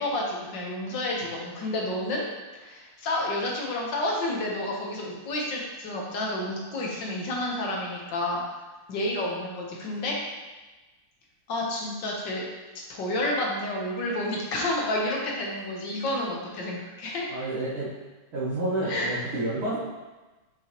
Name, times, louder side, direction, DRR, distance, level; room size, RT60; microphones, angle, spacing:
voice 1, 0.0-2.3 2.5-8.4 8.9-10.2 11.5-12.5 12.9-17.3 18.9-19.1, left 1 dB, 60° left, -2 dB, 1.6 m, -30 dB
voice 2, 17.3-17.9 18.3-19.8, right 2 dB, 70° right, -12 dB, 2.3 m, -29 dB
6.6 x 5.8 x 3.0 m, 1.2 s
omnidirectional pair, 2.4 m